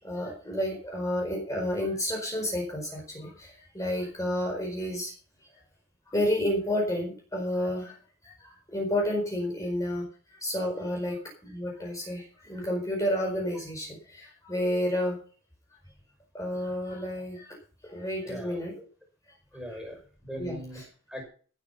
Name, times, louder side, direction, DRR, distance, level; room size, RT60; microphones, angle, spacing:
voice 1, 0.0-5.1 5.4-5.5 6.1-8.0 8.2-10.0 10.3-15.2 16.3-17.6 17.8-18.7 20.4-20.8, left 1 dB, 15° left, -1 dB, 4.4 m, -31 dB
voice 2, 18.2-18.6 19.5-21.2, equal, 5° right, 2 dB, 5.7 m, -40 dB
15.0 x 9.0 x 5.6 m, 0.40 s
head